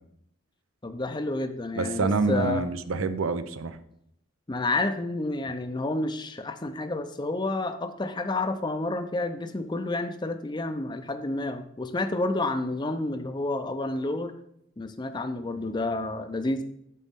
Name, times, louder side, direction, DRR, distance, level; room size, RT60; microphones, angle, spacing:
voice 1, 0.8-2.6 4.5-14.3 14.8-16.6, left 2 dB, 20° left, 9 dB, 0.5 m, -30 dB
voice 2, 1.8-3.8, right 3 dB, 85° right, 12 dB, 0.6 m, -27 dB
11.0 x 4.1 x 3.6 m, 0.76 s
head